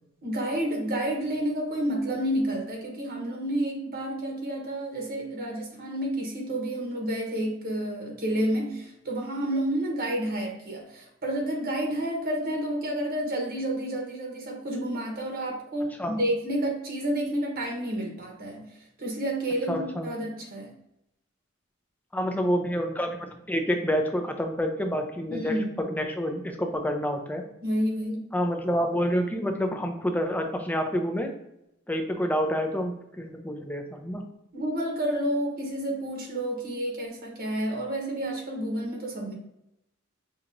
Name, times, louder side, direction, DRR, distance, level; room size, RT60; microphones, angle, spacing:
voice 1, 0.2-20.7 25.3-25.6 27.6-28.3 34.5-39.3, right 1 dB, 50° right, 0 dB, 1.0 m, -30 dB
voice 2, 19.7-20.1 22.1-27.4 28.3-31.3 31.9-34.2, equal, 10° left, 4 dB, 0.5 m, -28 dB
5.6 x 2.9 x 2.5 m, 0.83 s
head